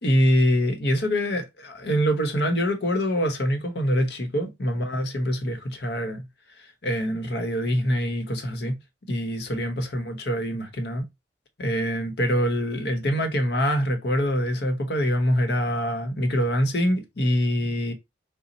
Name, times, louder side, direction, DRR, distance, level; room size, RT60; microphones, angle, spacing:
voice 1, 0.0-6.2 6.8-8.8 9.1-11.0 11.6-17.9, equal, 60° left, 0.8 m, -24 dB
4.1 x 2.0 x 3.9 m
head